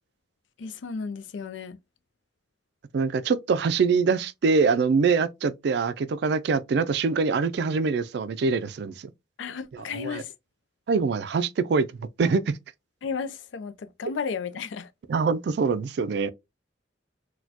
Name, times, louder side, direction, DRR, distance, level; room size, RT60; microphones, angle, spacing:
voice 1, 0.6-1.8 9.4-10.3 13.0-14.9, left 5 dB, 85° left, 0.4 m, -33 dB
voice 2, 2.9-9.1 9.9-10.2 10.9-11.9 12.2-12.6 15.1-16.3, right 5 dB, 60° right, 0.3 m, -24 dB
4.1 x 2.2 x 2.7 m
head